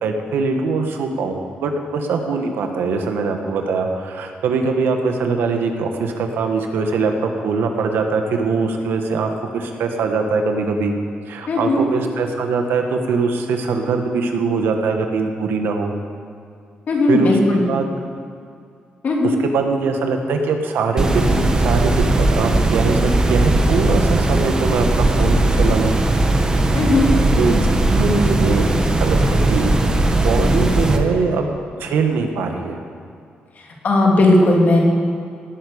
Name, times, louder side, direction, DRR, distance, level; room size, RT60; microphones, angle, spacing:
voice 1, 0.0-10.9 11.3-15.9 17.1-17.9 19.2-25.9 27.3-28.7 29.0-29.7 30.0-31.5 31.8-32.8, right 4 dB, 85° right, 4 dB, 1.6 m, -22 dB
voice 2, 11.5-11.9 16.9-17.6 19.0-19.4 26.7-27.1 33.8-34.8, left 2 dB, 50° left, -1 dB, 3.0 m, -16 dB
sound 1, 21.0-31.0, right 2 dB, 20° right, 1.3 m, -18 dB
18.0 x 8.6 x 7.0 m, 2.3 s
cardioid pair, 120°, 4 cm